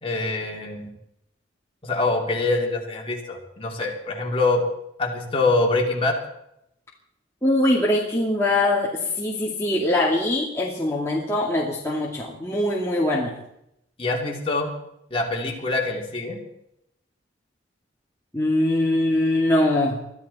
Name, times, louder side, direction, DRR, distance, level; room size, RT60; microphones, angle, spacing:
voice 1, 0.0-0.9 1.8-4.6 5.0-6.2 14.0-14.7 15.1-16.4, left 2 dB, 30° left, 0 dB, 3.2 m, -24 dB
voice 2, 7.4-13.3 18.3-20.0, left 1 dB, 15° left, -4 dB, 2.4 m, -22 dB
23.0 x 13.5 x 4.3 m, 0.78 s
head